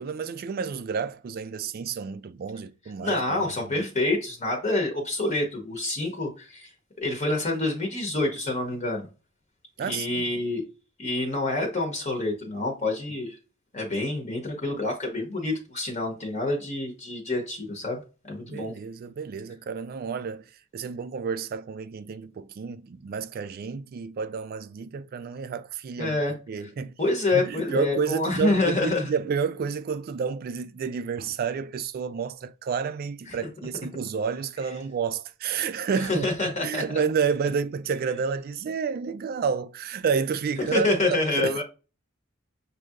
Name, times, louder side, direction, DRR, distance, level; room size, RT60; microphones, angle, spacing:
voice 1, 0.0-3.9 9.8-10.3 18.4-20.4 20.7-26.2 26.5-26.9 27.3-41.6, right 6 dB, 50° right, 0.3 m, -30 dB
voice 2, 3.0-6.7 7.0-9.1 9.8-10.6 11.0-13.4 13.7-18.7 26.0-26.3 26.6-26.7 27.0-29.1 33.3-33.4 36.0-37.0 40.7-41.6, left 2 dB, 35° left, 0.9 m, -27 dB
6.3 x 2.7 x 2.4 m
head